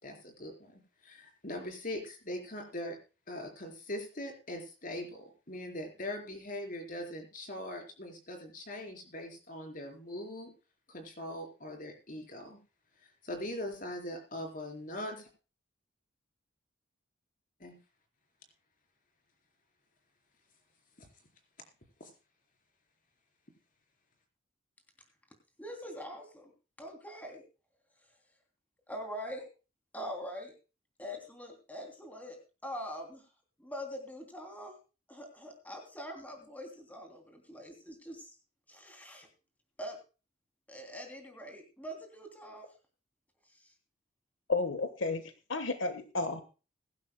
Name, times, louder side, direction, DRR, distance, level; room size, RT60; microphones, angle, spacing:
voice 1, 0.0-3.0 3.3-10.5 10.9-12.6 13.2-15.3 17.6-17.8 21.0-21.1 22.0-22.1, left 1 dB, 45° left, 3 dB, 4.4 m, -41 dB
voice 2, 25.6-26.5 26.8-27.4 28.9-29.5 29.9-30.5 31.0-33.2 33.6-34.8 35.1-38.3 38.7-39.3 39.8-40.0 40.7-42.7, equal, 10° left, 3 dB, 3.1 m, -43 dB
voice 3, 44.5-45.2 45.5-46.4, left 3 dB, 75° left, 9 dB, 1.4 m, -32 dB
22.0 x 11.5 x 2.3 m, 0.32 s
head